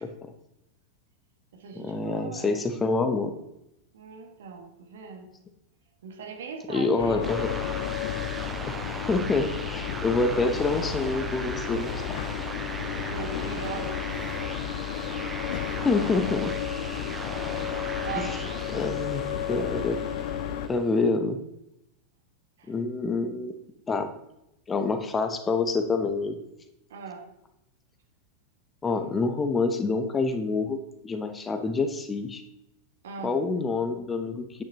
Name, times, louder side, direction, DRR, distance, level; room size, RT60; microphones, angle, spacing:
voice 1, 0.0-0.3 1.7-3.3 6.7-7.5 8.7-12.3 15.8-16.5 18.2-18.3 18.7-19.2 19.5-20.0 20.7-21.4 22.7-23.5 23.9-24.1 24.7-26.4 28.8-30.8 31.0-32.4 33.2-34.6, left 3 dB, 15° left, 8 dB, 0.9 m, -27 dB
voice 2, 1.5-2.6 3.9-5.3 6.0-7.3 13.1-14.0 18.0-18.6 22.6-22.7 26.9-27.2 33.0-33.4, right 5 dB, 60° right, 2 dB, 1.7 m, -39 dB
sound 1, 7.0-20.7, left 10 dB, 50° left, 0.6 m, -32 dB
sound 2, 7.2-20.9, right 3 dB, 15° right, 0.7 m, -39 dB
10.0 x 8.6 x 2.9 m, 0.85 s
figure-of-eight pair, 90°, 0 cm